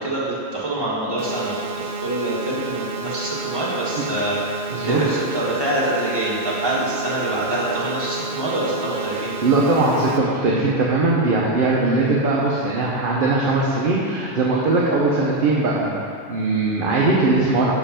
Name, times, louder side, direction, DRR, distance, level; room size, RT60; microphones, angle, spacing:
voice 1, 0.0-9.4, right 1 dB, 20° right, -8 dB, 1.7 m, -25 dB
sound 1, 1.2-10.2, right 4 dB, 90° right, 1.1 m, -31 dB
voice 2, 4.7-5.2 9.4-15.9 16.3-17.7, right 3 dB, 45° right, -4 dB, 0.8 m, -20 dB
6.0 x 5.6 x 5.6 m, 2.3 s
omnidirectional pair, 1.4 m